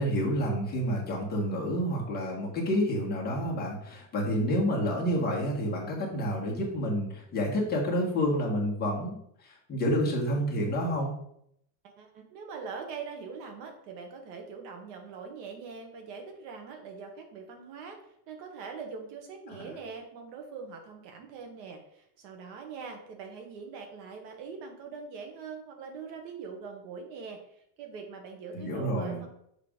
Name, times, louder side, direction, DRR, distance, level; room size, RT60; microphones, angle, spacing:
voice 1, 0.0-11.1 19.5-19.7 28.5-29.2, equal, 20° left, -4 dB, 1.3 m, -29 dB
voice 2, 11.8-29.3, right 5 dB, 75° right, 3 dB, 1.6 m, -43 dB
6.7 x 3.3 x 5.0 m, 0.73 s
cardioid pair, 170°, 49 cm